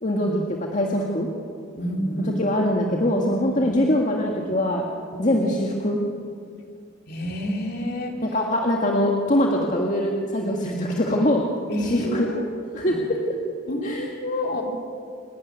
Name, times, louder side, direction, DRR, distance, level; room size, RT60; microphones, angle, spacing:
voice 1, 0.0-1.3 2.4-4.8 5.2-6.0 8.3-11.4 11.8-12.3 12.7-13.2 13.8-14.1, left 1 dB, 40° left, 0 dB, 1.8 m, -23 dB
voice 2, 1.8-2.4 3.6-3.8 5.2-5.5 7.1-8.2 11.7-12.5 12.9-13.0 13.7-14.6, left 1 dB, 55° left, 1 dB, 3.4 m, -28 dB
28.5 x 12.5 x 9.4 m, 2.3 s
head